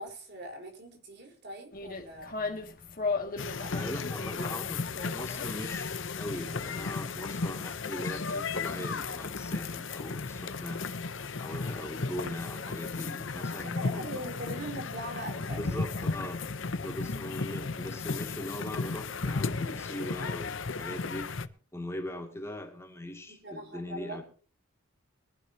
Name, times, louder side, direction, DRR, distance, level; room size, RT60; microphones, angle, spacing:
voice 1, 0.0-2.3 3.5-3.9 13.7-16.1 23.3-24.2, right 1 dB, 50° right, 3 dB, 4.3 m, -41 dB
sound 1, 1.7-7.9, left 4 dB, 40° left, 2.3 m, -38 dB
sound 2, 3.4-21.5, left 4 dB, 60° left, 0.8 m, -35 dB
voice 2, 3.7-10.9 11.4-14.2 15.3-16.4 16.8-21.3 21.7-24.2, left 1 dB, 10° left, 2 dB, 2.5 m, -40 dB
22.5 x 12.0 x 2.9 m, 0.42 s
head